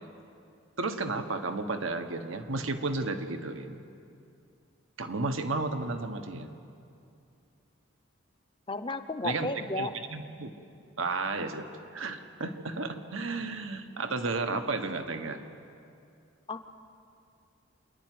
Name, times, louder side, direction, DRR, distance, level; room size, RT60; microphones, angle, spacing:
voice 1, 0.8-3.8 5.0-6.5 9.2-9.5 9.8-10.5 11.0-11.6 11.9-15.4, right 3 dB, 80° right, 7 dB, 1.4 m, -33 dB
voice 2, 8.7-9.9 16.5-16.7, left 3 dB, 25° left, 10 dB, 0.8 m, -33 dB
27.5 x 11.0 x 9.4 m, 2.5 s
head